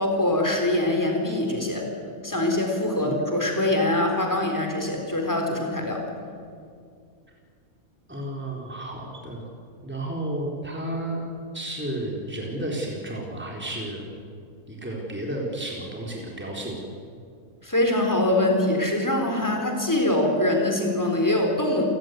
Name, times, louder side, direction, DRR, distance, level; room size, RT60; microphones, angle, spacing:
voice 1, 0.0-1.9 2.2-6.1 17.6-21.8, left 1 dB, 10° left, 2 dB, 4.1 m, -23 dB
voice 2, 8.1-9.4 9.8-11.2 11.5-14.1 14.7-16.8, right 1 dB, 5° right, -1 dB, 4.1 m, -32 dB
29.5 x 16.5 x 9.5 m, 2.3 s
omnidirectional pair, 1.5 m